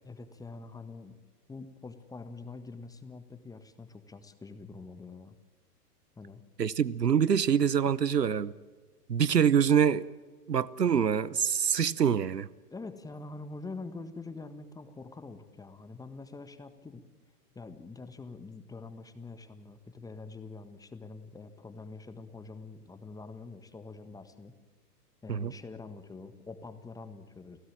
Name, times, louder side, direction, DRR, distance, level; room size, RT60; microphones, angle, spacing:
voice 1, 0.0-1.1 1.5-5.3 6.2-6.4 12.7-17.0 17.5-24.5 25.2-27.6, left 3 dB, 5° left, 1.5 m, -45 dB
voice 2, 6.6-8.5 9.1-10.0 10.5-12.5 25.3-25.5, right 8 dB, 85° right, 0.9 m, -25 dB
29.5 x 16.0 x 7.4 m
figure-of-eight pair, 110°, 47 cm